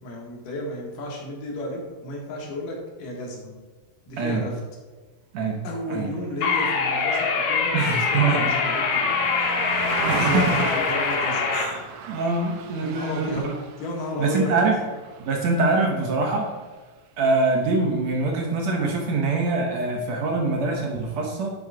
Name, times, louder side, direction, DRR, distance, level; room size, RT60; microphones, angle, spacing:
voice 1, 0.0-3.5 4.1-4.6 5.6-9.3 10.1-11.5 12.0-12.2 12.8-13.5 13.8-14.7, left 1 dB, 80° left, -2 dB, 3.2 m, -32 dB
sound 1, 6.4-11.6, left 5 dB, 60° left, 1.8 m, -24 dB
Car passing by, 6.8-16.0 16.4-16.6, right 6 dB, 85° right, 1.4 m, -35 dB
voice 2, 7.7-8.5 10.1-10.6 11.5-11.8 12.1-13.6 14.2-14.7 15.2-16.5 17.2-21.5, right 3 dB, 65° right, 0 dB, 1.9 m, -24 dB
10.5 x 3.8 x 4.8 m, 1.3 s
omnidirectional pair, 3.8 m